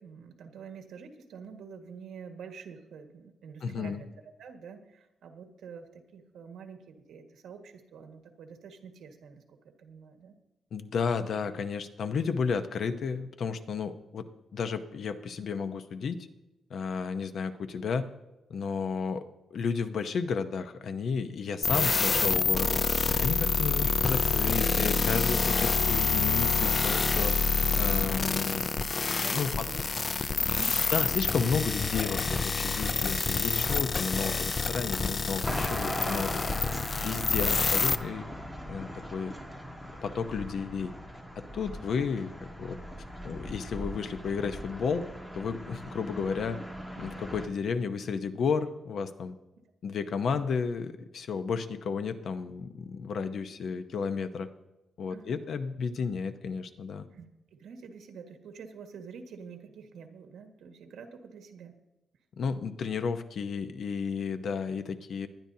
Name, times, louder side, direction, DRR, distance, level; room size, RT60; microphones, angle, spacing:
voice 1, 0.0-4.1 4.4-10.3 29.2-29.8 30.2-30.9 37.0-37.4 55.1-55.4 57.1-57.3 57.5-61.8, right 6 dB, 75° right, 5 dB, 1.7 m, -47 dB
voice 2, 3.6-4.0 10.7-14.2 14.5-16.2 16.7-18.0 18.5-19.2 19.5-22.8 23.2-28.9 29.3-29.7 30.9-36.3 36.9-38.2 38.6-39.3 40.0-40.9 41.4-42.3 42.6-42.8 43.2-45.0 45.3-46.6 47.0-49.4 49.8-54.5 55.0-57.1 62.4-65.3, left 5 dB, 55° left, 9 dB, 0.8 m, -32 dB
sound 1, 21.6-37.9, left 4 dB, 25° left, 0.4 m, -27 dB
sound 2, 35.4-47.5, equal, 10° left, 1.5 m, -39 dB
19.5 x 12.0 x 2.8 m, 1.0 s
wide cardioid pair, 165°, 0 cm